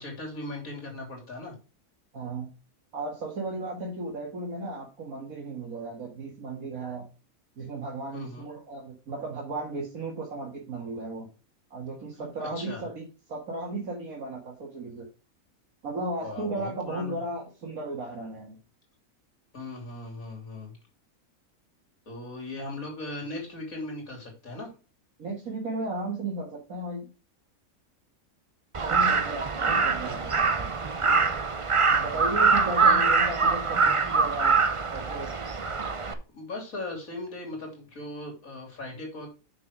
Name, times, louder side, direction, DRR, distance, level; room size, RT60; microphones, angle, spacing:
voice 1, 0.0-1.6 8.1-8.5 12.4-12.9 16.2-17.2 19.5-20.8 22.1-24.7 31.9-32.3 32.8-33.1 35.8-39.3, left 2 dB, 80° left, -1 dB, 3.6 m, -38 dB
voice 2, 2.1-2.5 2.9-7.1 7.6-11.3 11.7-15.1 15.8-18.6 25.2-27.1 28.8-30.8 32.0-34.6 34.9-35.3, right 2 dB, 85° right, -2 dB, 2.3 m, -35 dB
Crow, 28.7-36.1, right 4 dB, 30° right, 0.6 m, -24 dB
6.5 x 6.2 x 4.8 m, 0.32 s
omnidirectional pair, 1.5 m